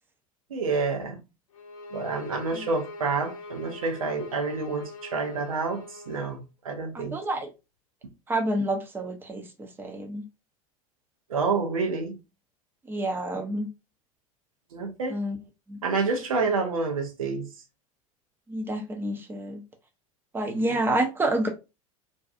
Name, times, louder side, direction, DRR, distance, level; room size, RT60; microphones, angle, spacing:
voice 1, 0.5-1.2 1.9-6.4 6.6-7.2 11.3-12.2 14.7-15.2 15.8-17.5 20.7-20.8, right 4 dB, 75° right, 0.7 m, -28 dB
sound 1, 1.5-6.4, left 2 dB, 70° left, 0.6 m, -43 dB
voice 2, 6.9-7.5 8.3-10.2 12.9-13.7 15.1-15.4 15.7-15.8 18.5-19.6 20.3-21.5, right 1 dB, 10° right, 0.6 m, -28 dB
2.6 x 2.3 x 2.4 m
figure-of-eight pair, 75°, 18 cm